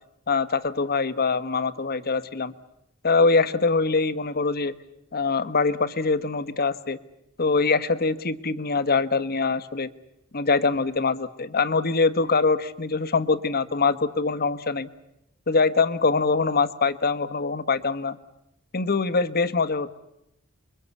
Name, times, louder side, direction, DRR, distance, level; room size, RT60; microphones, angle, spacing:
voice 1, 0.3-2.5 3.0-4.8 5.1-7.0 7.4-9.9 10.3-14.9 15.5-18.2 18.7-19.9, left 4 dB, 45° left, 12 dB, 1.3 m, -23 dB
29.5 x 23.0 x 8.3 m, 0.83 s
head